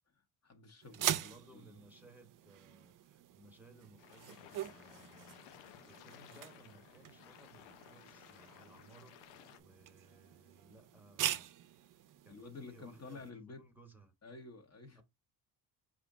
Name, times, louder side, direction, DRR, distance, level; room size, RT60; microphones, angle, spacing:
voice 1, 0.1-1.8 12.3-13.6 14.2-15.0, left 3 dB, 35° left, 1.0 m, -51 dB
sound 1, 0.8-13.3, right 12 dB, 50° right, 0.5 m, -43 dB
voice 2, 0.9-11.9 12.2-14.1 14.9-15.0, right 2 dB, 5° right, 1.0 m, -61 dB
sound 2, 4.0-9.6, left 12 dB, 85° left, 0.6 m, -57 dB
4.9 x 2.6 x 3.5 m
cardioid pair, 85°, 43 cm